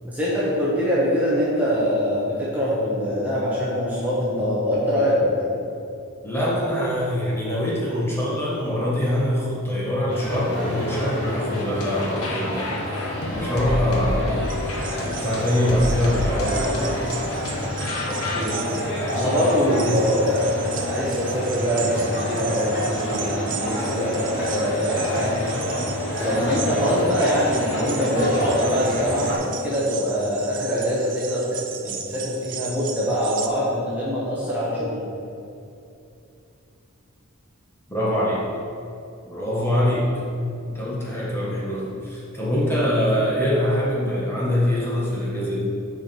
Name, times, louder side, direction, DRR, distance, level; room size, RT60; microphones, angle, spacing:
voice 1, 0.0-5.5 13.8-14.0 18.3-18.6 19.1-25.3 26.2-31.6 31.8-35.1, equal, 5° right, -9 dB, 1.3 m, -23 dB
voice 2, 6.2-12.7 13.3-14.3 15.0-17.1 19.7-20.0 37.9-38.4 39.2-40.1 40.7-45.6, left 1 dB, 10° left, -7 dB, 1.6 m, -24 dB
sound 1, 10.1-29.3, left 1 dB, 55° left, 2.1 m, -28 dB
sound 2, 11.5-18.4, left 1 dB, 85° left, 1.3 m, -31 dB
sound 3, 14.5-33.5, right 8 dB, 40° right, 0.5 m, -36 dB
8.6 x 5.0 x 5.4 m, 2.6 s
head